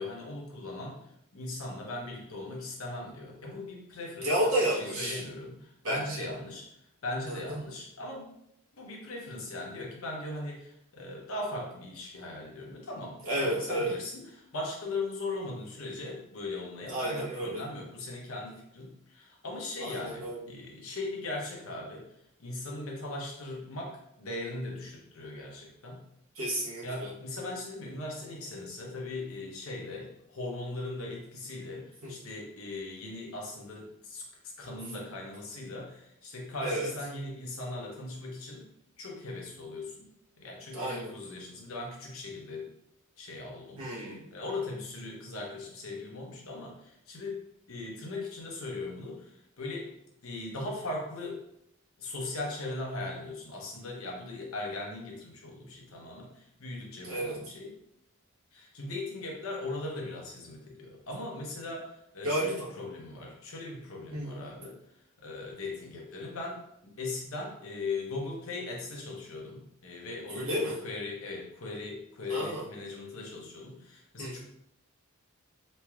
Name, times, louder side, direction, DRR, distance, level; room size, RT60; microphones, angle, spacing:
voice 1, 0.0-4.4 4.8-6.7 7.0-8.3 8.8-22.1 22.4-26.1 26.8-34.3 34.6-38.7 39.0-40.1 40.4-42.7 43.2-43.8 44.3-49.9 50.2-51.4 52.0-57.7 58.5-64.8 65.2-74.4, left 2 dB, 75° left, -1 dB, 0.8 m, -39 dB
voice 2, 4.2-5.2 5.8-6.3 7.3-7.6 13.3-13.9 16.9-17.6 19.8-20.4 26.3-27.1 32.0-32.2 36.6-36.9 40.7-41.1 43.8-44.3 57.0-57.4 62.2-62.7 64.1-64.4 70.3-70.8 72.3-72.7 74.2-74.4, right 1 dB, 75° right, -7 dB, 1.1 m, -31 dB
3.1 x 3.1 x 2.3 m, 0.77 s
head